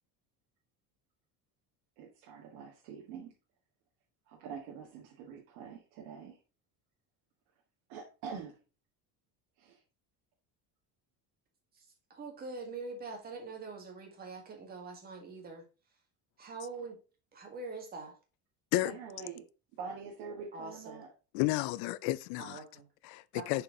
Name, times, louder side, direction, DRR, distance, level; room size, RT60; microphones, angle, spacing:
voice 1, 2.0-3.3 4.3-6.4 7.9-8.6 9.6-9.8 18.8-19.4 19.8-21.1, right 6 dB, 90° right, 1.4 m, -45 dB
voice 2, 12.1-15.6 16.4-17.0 17.3-18.1 20.5-21.0 22.4-22.9 23.3-23.6, right 3 dB, 25° right, 1.6 m, -44 dB
voice 3, 21.3-22.6 23.0-23.6, left 17 dB, 80° left, 0.5 m, -32 dB
6.7 x 4.5 x 3.7 m
cardioid pair, 175°, 36 cm